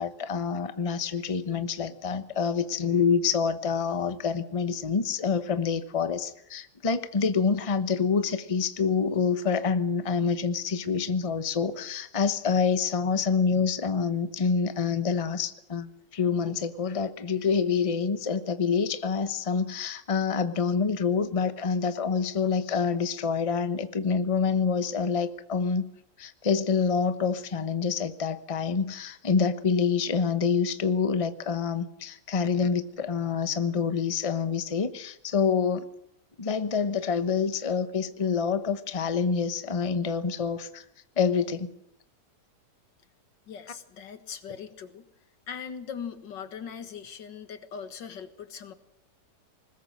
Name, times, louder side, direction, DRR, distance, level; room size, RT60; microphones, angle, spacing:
voice 1, 0.0-25.8 26.2-35.9 36.4-40.8 41.2-41.7, left 5 dB, 25° left, 11 dB, 0.9 m, -27 dB
voice 2, 43.5-45.0 45.5-48.7, left 7 dB, 90° left, 10 dB, 2.2 m, -40 dB
20.5 x 20.5 x 7.7 m, 0.74 s
omnidirectional pair, 1.9 m